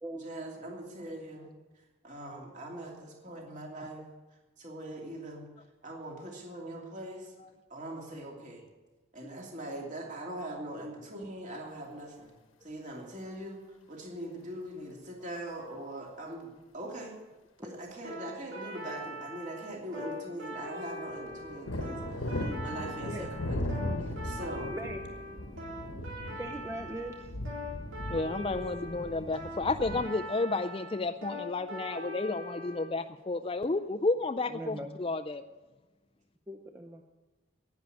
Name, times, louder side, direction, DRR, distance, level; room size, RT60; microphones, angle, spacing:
voice 1, 0.1-1.5 2.0-4.0 4.6-5.5 5.8-7.3 7.7-8.6 9.1-12.3 12.6-17.1 17.6-24.8, right 1 dB, 35° right, -1 dB, 2.7 m, -42 dB
sound 1, 18.0-32.9, equal, 70° right, 3.8 m, -42 dB
sound 2, 21.2-30.0, left 1 dB, 90° left, 1.3 m, -38 dB
voice 2, 26.3-27.3 34.5-35.0 36.5-37.0, right 1 dB, 15° right, 3 dB, 0.7 m, -41 dB
voice 3, 28.1-35.4, left 3 dB, 25° left, 8 dB, 0.4 m, -31 dB
10.5 x 10.0 x 9.1 m, 1.2 s
head